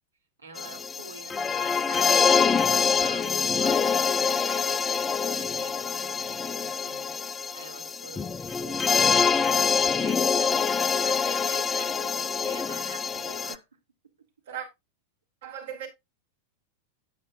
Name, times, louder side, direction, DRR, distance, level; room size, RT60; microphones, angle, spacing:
voice 1, 0.4-13.7, right 4 dB, 75° right, 2.2 m, -46 dB
sound 1, 0.6-13.5, left 5 dB, 15° left, 0.4 m, -25 dB
voice 2, 15.4-15.9, right 9 dB, 60° right, 4.2 m, -36 dB
9.0 x 8.9 x 2.5 m
figure-of-eight pair, 90°, 0 cm